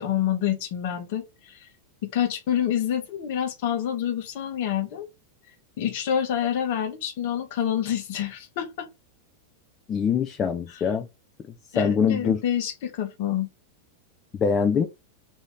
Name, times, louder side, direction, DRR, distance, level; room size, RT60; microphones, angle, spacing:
voice 1, 0.0-1.7 2.0-5.1 5.8-8.9 10.7-10.8 11.7-13.5, left 10 dB, 50° left, 1.0 m, -27 dB
voice 2, 9.9-11.1 11.8-12.4 14.4-14.9, left 6 dB, 25° left, 0.5 m, -23 dB
3.0 x 2.7 x 3.5 m
figure-of-eight pair, 90°, 0 cm